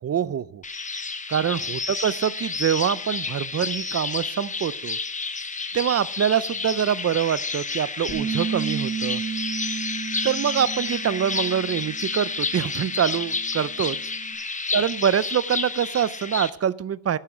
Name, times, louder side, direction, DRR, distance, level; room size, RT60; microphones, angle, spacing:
voice 1, 0.0-0.6 1.3-5.0 5.7-9.2 10.2-14.0 14.7-17.2, right 9 dB, 35° right, 18 dB, 0.4 m, -25 dB
sound 1, 0.6-16.5, left 4 dB, 15° left, 0.7 m, -30 dB
Bass guitar, 8.1-12.4 12.7-14.3, right 7 dB, 80° left, 2.6 m, -33 dB
11.5 x 9.4 x 5.0 m, 0.67 s
cardioid pair, 120°, 45 cm